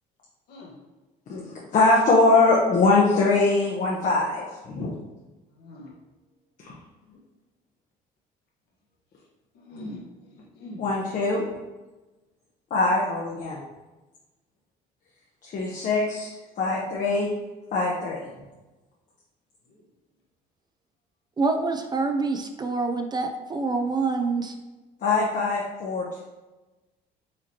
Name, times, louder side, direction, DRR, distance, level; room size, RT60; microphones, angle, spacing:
voice 1, 1.3-4.9 6.6-6.7 10.8-11.4 12.7-13.6 15.4-17.3 17.7-18.3 25.0-26.2, left 3 dB, 50° left, -3 dB, 0.7 m, -22 dB
voice 2, 5.5-5.9 9.5-10.0 10.3-10.9 19.7-19.8, left 1 dB, 70° left, -2 dB, 1.1 m, -42 dB
voice 3, 21.4-24.5, right 3 dB, 25° right, 5 dB, 0.4 m, -26 dB
4.9 x 3.1 x 2.8 m, 1.1 s
cardioid pair, 110°, 17 cm